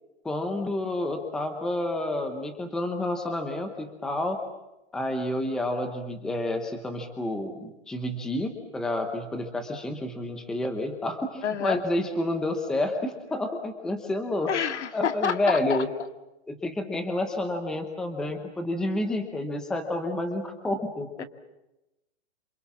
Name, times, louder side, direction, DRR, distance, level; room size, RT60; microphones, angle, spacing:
voice 1, 0.2-4.4 4.9-14.5 14.9-15.9 16.5-21.2, left 1 dB, ahead, 6 dB, 0.9 m, -29 dB
voice 2, 11.4-11.8 14.5-15.8 21.2-21.3, left 7 dB, 75° left, 9 dB, 2.3 m, -28 dB
27.5 x 25.5 x 7.3 m, 0.95 s
hypercardioid pair, 175°, 35 cm